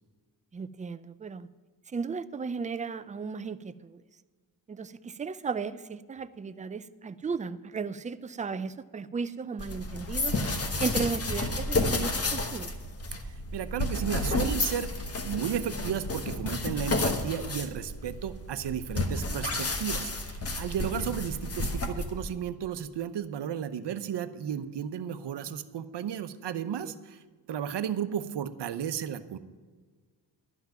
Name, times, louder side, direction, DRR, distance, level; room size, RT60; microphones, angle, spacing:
voice 1, 0.5-1.5 1.9-4.0 4.7-10.4 10.8-12.7 26.8-26.9, right 5 dB, 20° right, 13 dB, 0.3 m, -35 dB
sound 1, 9.6-22.3, left 2 dB, 35° left, 1.1 m, -31 dB
voice 2, 13.5-14.9 15.2-27.2 27.5-29.4, right 9 dB, 70° right, 11 dB, 0.8 m, -34 dB
11.5 x 5.9 x 9.0 m, 1.5 s
wide cardioid pair, 145°, 43 cm